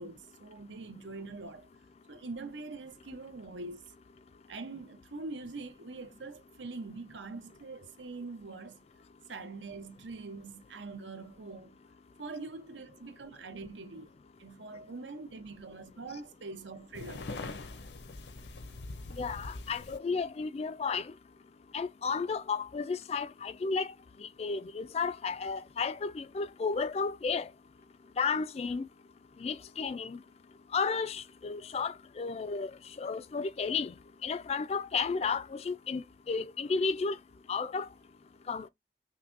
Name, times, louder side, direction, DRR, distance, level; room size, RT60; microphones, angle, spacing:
voice 1, 0.0-1.7 2.1-3.9 4.5-8.8 9.3-11.8 12.2-17.3 20.1-20.2, right 3 dB, 90° right, 0.8 m, -44 dB
sound 1, 16.9-20.0, left 3 dB, 70° left, 0.7 m, -42 dB
voice 2, 19.2-21.1 21.7-23.9 24.2-27.5 28.2-28.9 29.4-30.2 30.7-33.9 34.2-37.2 37.5-37.9 38.5-38.7, left 5 dB, 35° left, 0.3 m, -33 dB
5.7 x 2.2 x 2.5 m
head